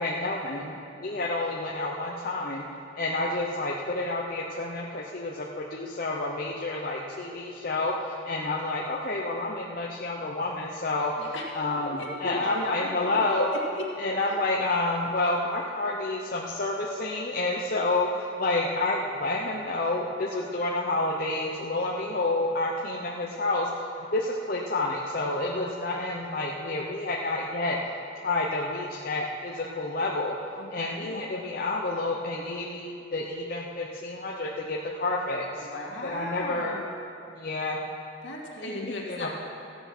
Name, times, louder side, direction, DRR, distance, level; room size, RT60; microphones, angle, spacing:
voice 1, 0.0-2.6 3.0-11.1 11.5-13.6 14.0-27.8 28.2-30.4 30.7-35.7 36.0-36.8 37.3-37.8 38.6-39.3, left 2 dB, 45° left, -3 dB, 0.8 m, -29 dB
voice 2, 11.2-11.5 12.2-13.3 14.3-14.4 30.6-31.1 35.6-37.0 38.2-39.3, left 1 dB, 70° left, -3 dB, 2.3 m, -37 dB
15.0 x 8.1 x 6.1 m, 2.7 s
head